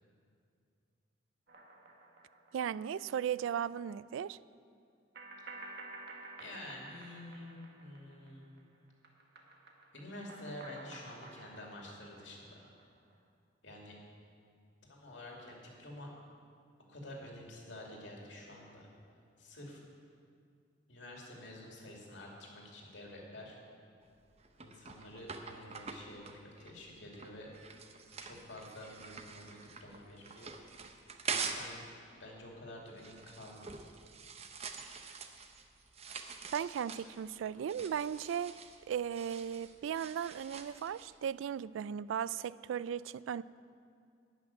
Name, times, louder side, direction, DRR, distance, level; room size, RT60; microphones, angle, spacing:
sound 1, 1.5-3.1 3.4-3.5 5.1-8.6 8.9-13.1, right 2 dB, 55° right, 1.4 m, -52 dB
voice 1, 2.5-4.4 36.5-38.6 38.9-43.4, right 8 dB, 85° right, 0.3 m, -36 dB
voice 2, 6.4-8.4 9.9-12.6 13.6-14.0 14.9-16.1 16.9-18.9 19.4-19.8 20.9-23.6 24.6-27.5 28.2-30.5 31.3-31.9 32.2-33.8, left 1 dB, 70° left, 2.6 m, -49 dB
sound 2, 24.0-31.8 32.1-41.1, right 5 dB, 35° right, 0.7 m, -45 dB
12.5 x 6.0 x 9.6 m
head